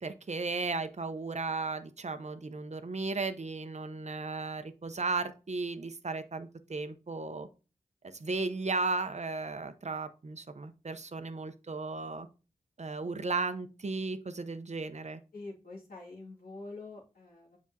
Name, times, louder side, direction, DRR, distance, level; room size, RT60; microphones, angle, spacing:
voice 1, 0.0-7.5 8.2-12.3 12.8-15.2, right 3 dB, 50° right, 10 dB, 0.7 m, -35 dB
voice 2, 15.3-17.6, left 2 dB, 85° left, -3 dB, 2.3 m, -46 dB
7.3 x 5.2 x 2.7 m, 0.32 s
cardioid pair, 50°, 15 cm